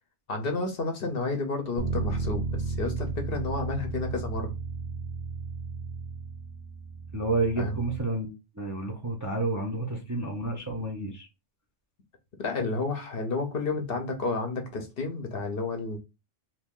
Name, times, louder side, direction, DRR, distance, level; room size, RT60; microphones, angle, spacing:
voice 1, 0.3-4.5 7.6-7.8 9.9-10.0 12.4-16.0, left 3 dB, 55° left, 0.9 m, -31 dB
Bass guitar, 1.8-8.0, right 4 dB, 65° right, 0.9 m, -34 dB
voice 2, 7.1-11.3, right 2 dB, 20° right, 0.5 m, -30 dB
2.9 x 2.6 x 3.6 m
omnidirectional pair, 1.2 m